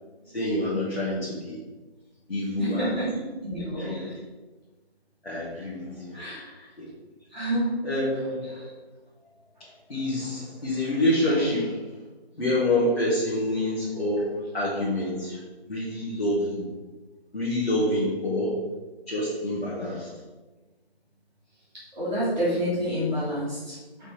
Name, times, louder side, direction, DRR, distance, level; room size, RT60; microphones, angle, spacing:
voice 1, 0.3-1.6 2.3-3.0 3.6-4.1 5.2-6.3 6.8-6.9 7.8-8.7 9.6-12.0 12.3-15.4 15.7-16.7 17.3-18.7 19.1-20.1, left 1 dB, 65° left, -7 dB, 2.0 m, -27 dB
voice 2, 2.6-3.1 3.4-3.9 6.1-6.7 7.3-7.8 21.9-24.1, equal, ahead, -24 dB, 1.3 m, -28 dB
5.0 x 4.3 x 5.0 m, 1.2 s
figure-of-eight pair, 170°, 32 cm